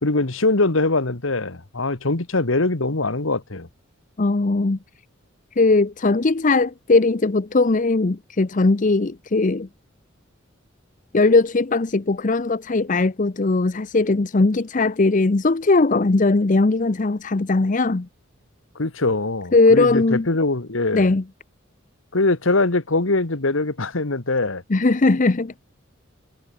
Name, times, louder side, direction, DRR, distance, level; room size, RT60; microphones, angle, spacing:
voice 1, 0.0-3.7 18.7-21.1 22.1-24.6, left 2 dB, 75° left, 1.7 m, -22 dB
voice 2, 4.2-4.8 5.6-9.7 11.1-18.1 19.5-20.3 20.9-21.2 24.7-25.6, left 3 dB, 40° left, 0.7 m, -19 dB
head